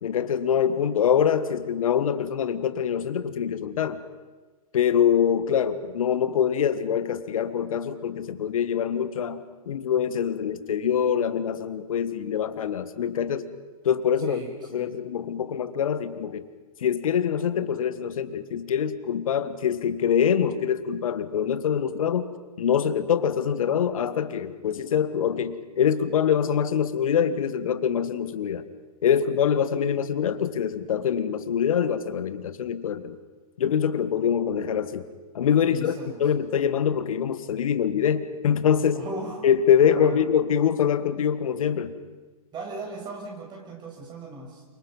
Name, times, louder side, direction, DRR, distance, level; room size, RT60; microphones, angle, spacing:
voice 1, 0.0-4.0 4.7-13.4 13.8-14.4 14.7-16.4 16.8-22.3 22.6-28.6 29.0-33.2 33.6-35.0 35.3-39.0 39.4-41.9, left 8 dB, 65° left, 12 dB, 1.6 m, -24 dB
voice 2, 14.2-14.9 35.6-36.3 38.9-39.5 39.8-40.2 42.5-44.6, right 2 dB, 25° right, 1 dB, 6.2 m, -38 dB
28.0 x 25.0 x 5.5 m, 1.3 s
hypercardioid pair, 120°, 19 cm